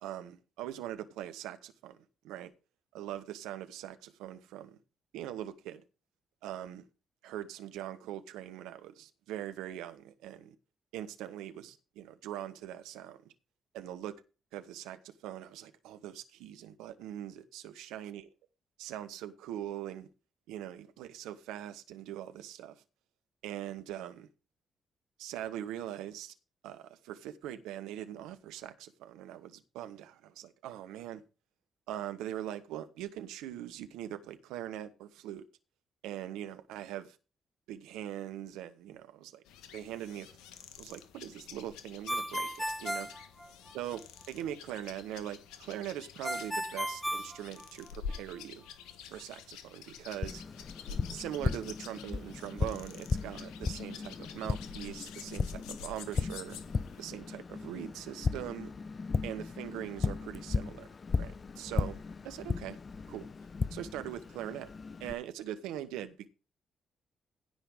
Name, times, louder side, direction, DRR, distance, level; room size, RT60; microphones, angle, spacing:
voice 1, 0.0-2.0 2.2-2.5 2.9-4.8 5.1-5.8 6.4-6.9 7.2-10.5 10.9-13.2 13.7-14.2 14.5-18.2 18.8-20.1 20.5-22.8 23.4-24.3 25.2-26.3 26.6-31.2 31.9-35.4 36.0-37.2 37.7-39.4 39.7-40.3 40.8-43.1 43.7-44.0 44.3-48.6 49.1-50.4 51.1-56.6 57.0-58.7 59.2-60.9 61.2-62.8 63.1-63.3 63.7-64.7 65.0-66.3, right 12 dB, 75° right, 1.2 m, -42 dB
sound 1, 39.5-57.0, left 7 dB, 75° left, 1.3 m, -48 dB
Ringtone, 42.1-44.0 46.2-48.1, equal, ahead, 1.2 m, -35 dB
Tap, 50.2-65.1, left 4 dB, 45° left, 0.7 m, -36 dB
16.0 x 5.7 x 4.9 m
hypercardioid pair, 40°, 0 cm